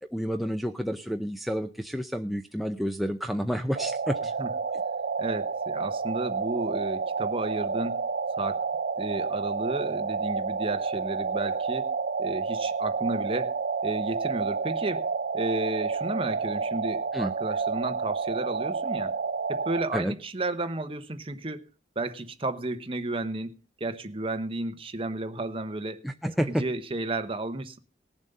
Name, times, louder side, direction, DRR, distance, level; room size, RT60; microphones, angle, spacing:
voice 1, 0.0-4.3 17.1-17.3 19.9-20.1 26.0-26.6, equal, ahead, 0.6 m, -30 dB
sound 1, 3.8-19.8, right 5 dB, 55° right, 0.5 m, -30 dB
voice 2, 5.2-8.0 8.4-8.7 9.0-11.9 12.2-15.1 15.3-19.2 19.5-21.7 21.9-26.0 26.5-27.8, right 2 dB, 30° right, 1.0 m, -33 dB
19.0 x 7.3 x 5.4 m
head